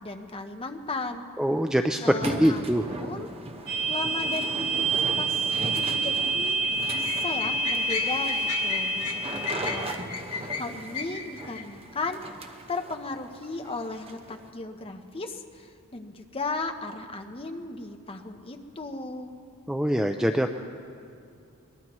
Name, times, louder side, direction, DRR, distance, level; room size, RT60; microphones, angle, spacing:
voice 1, 0.0-1.3 2.0-3.3 3.9-6.6 6.9-10.0 10.2-12.2 12.7-19.4, left 3 dB, 25° left, 5 dB, 0.8 m, -36 dB
voice 2, 1.4-2.8 19.7-20.5, equal, 5° right, 5 dB, 0.3 m, -24 dB
sound 1, 2.2-14.5, right 2 dB, 25° right, 0.9 m, -38 dB
sound 2, 3.7-10.0, right 2 dB, 50° right, 1.8 m, -28 dB
sound 3, 6.6-11.6, left 5 dB, 90° left, 2.3 m, -35 dB
22.5 x 21.0 x 3.1 m, 2.5 s
head